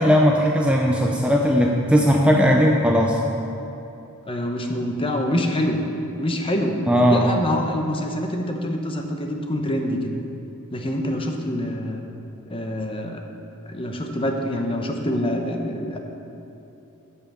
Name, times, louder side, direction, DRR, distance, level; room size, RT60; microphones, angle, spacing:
voice 1, 0.0-3.2 6.9-7.3, equal, 5° right, 0 dB, 0.5 m, -18 dB
voice 2, 4.2-5.8 6.2-6.8 7.1-10.2 10.7-12.0 12.5-13.2 13.7-16.0, left 1 dB, 25° left, 3 dB, 0.8 m, -25 dB
8.8 x 5.7 x 7.2 m, 2.9 s
head